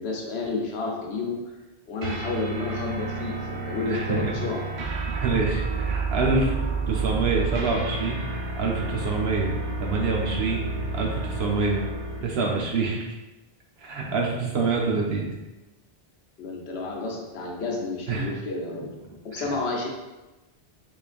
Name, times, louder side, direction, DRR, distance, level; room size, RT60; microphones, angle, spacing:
voice 1, 0.0-1.4 1.9-3.4 3.7-4.7 16.4-18.9 19.2-19.9, left 3 dB, 85° left, 0 dB, 1.0 m, -30 dB
sound 1, 2.0-12.3, right 3 dB, 55° right, 0.6 m, -30 dB
voice 2, 3.9-4.3 4.8-6.5 6.9-8.2 8.6-9.5 9.8-10.6 10.9-11.8 12.2-13.0 13.8-15.3 18.1-18.3 19.4-19.5, right 4 dB, 75° right, -1 dB, 0.9 m, -26 dB
3.6 x 3.2 x 2.4 m, 1.1 s
omnidirectional pair, 1.0 m